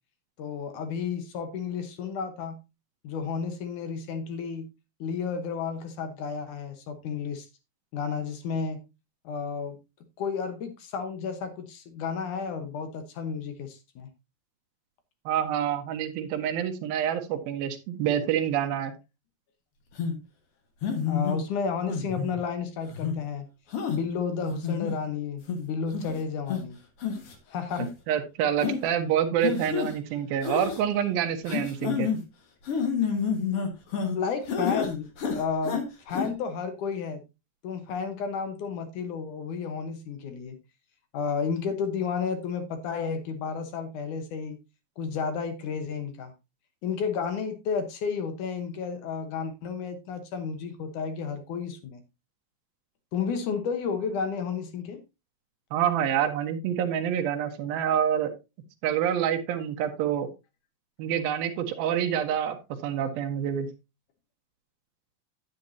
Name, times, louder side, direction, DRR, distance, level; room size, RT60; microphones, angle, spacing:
voice 1, 0.4-2.6 3.0-4.7 5.0-7.5 7.9-8.8 9.2-9.8 10.2-14.1 21.1-23.5 23.9-26.8 27.5-27.9 34.1-37.2 37.6-40.6 41.1-44.6 45.0-46.3 46.8-52.0 53.1-55.0, left 6 dB, 65° left, 8 dB, 2.2 m, -32 dB
voice 2, 15.3-18.9 28.1-32.1 55.7-58.3 58.8-60.3 61.0-63.7, right 9 dB, 70° right, 5 dB, 2.9 m, -27 dB
sound 1, 20.0-20.1 20.8-21.4 21.9-22.4 22.9-23.1 23.7-24.0 24.5-24.9 25.5-25.6 25.9-26.1 26.5-26.6 27.0-27.3 27.7-27.9 28.6-28.8 29.4-29.9 30.4-30.8 31.5-32.2 32.7-34.2 34.5-34.9 35.2-35.8 36.1-36.3, left 6 dB, 50° left, 1.8 m, -29 dB
9.6 x 9.6 x 2.7 m, 0.25 s
omnidirectional pair, 4.6 m